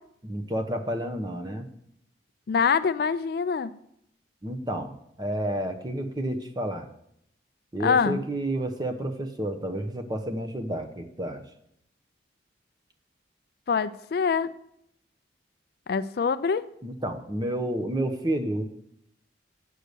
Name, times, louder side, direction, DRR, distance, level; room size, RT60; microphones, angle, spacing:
voice 1, 0.2-1.7 4.4-6.9 7.7-11.4 16.8-18.7, right 1 dB, 20° right, 6 dB, 0.9 m, -30 dB
voice 2, 2.5-3.7 7.8-8.2 13.7-14.5 15.9-16.7, left 6 dB, 55° left, 14 dB, 0.4 m, -24 dB
8.7 x 6.5 x 6.7 m, 0.74 s
head